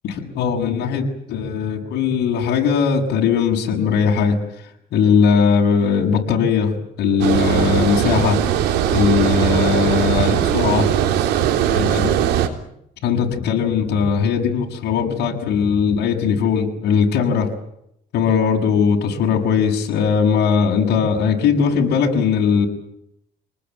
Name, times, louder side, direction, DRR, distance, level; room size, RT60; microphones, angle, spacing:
voice 1, 0.0-4.4 4.9-8.4 8.7-10.9 11.7-12.1 13.0-17.5 18.1-22.7, left 6 dB, 75° left, 1 dB, 7.1 m, -19 dB
Water, 7.2-12.5, right 10 dB, 90° right, 3.6 m, -19 dB
28.0 x 20.0 x 9.3 m, 0.77 s
cardioid pair, 110°, 17 cm